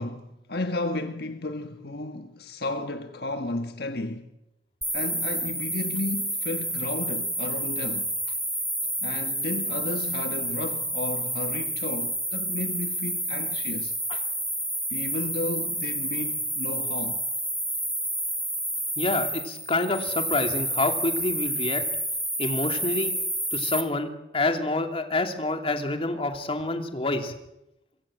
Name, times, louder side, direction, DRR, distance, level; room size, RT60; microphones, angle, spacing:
voice 1, 0.0-4.2 4.9-8.1 9.0-14.0 14.9-17.2, left 2 dB, 60° left, 1.5 m, -33 dB
sound 1, 4.8-23.8, right 1 dB, ahead, 1.8 m, -29 dB
voice 2, 19.0-21.8 22.4-23.1 23.5-27.3, left 2 dB, 30° left, 2.8 m, -27 dB
25.0 x 24.0 x 7.7 m
head